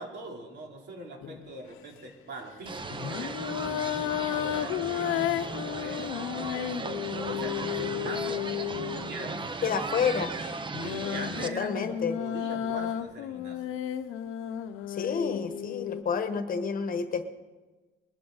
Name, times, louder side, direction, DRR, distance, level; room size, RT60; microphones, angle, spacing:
voice 1, 0.0-3.6 4.3-6.1 6.8-8.4 8.9-9.7 10.7-13.6, right 1 dB, 55° right, 0 dB, 3.5 m, -42 dB
sound 1, 1.2-1.5 2.9-9.5 10.4-16.0, left 11 dB, 85° left, 0.8 m, -33 dB
sound 2, 2.7-11.5, right 4 dB, 25° right, 0.8 m, -36 dB
voice 2, 9.6-10.3 11.4-12.2 14.9-17.3, left 6 dB, 45° left, 9 dB, 1.2 m, -29 dB
22.0 x 11.5 x 4.0 m, 1.3 s
cardioid pair, 125°, 21 cm